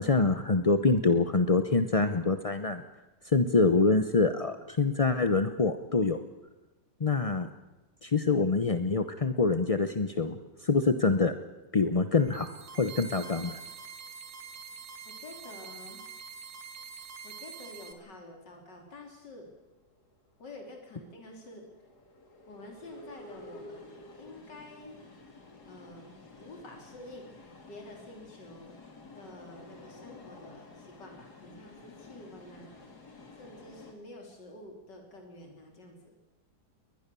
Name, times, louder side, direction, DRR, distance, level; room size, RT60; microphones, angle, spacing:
voice 1, 0.0-2.8 3.2-6.2 7.0-7.5 8.0-11.3 11.7-12.5 12.8-13.6, left 3 dB, 35° left, 9 dB, 0.6 m, -25 dB
sound 1, 12.2-17.9, right 5 dB, 60° right, 2.1 m, -45 dB
voice 2, 15.0-16.0 17.2-19.5 20.4-21.7 22.5-23.9 24.2-25.0 25.6-28.7 29.1-32.7 33.4-36.2, left 1 dB, 90° left, 2 dB, 3.9 m, -48 dB
sound 2, 19.8-33.9, left 2 dB, 65° left, 3.5 m, -52 dB
21.5 x 21.0 x 6.9 m, 1.1 s
omnidirectional pair, 1.8 m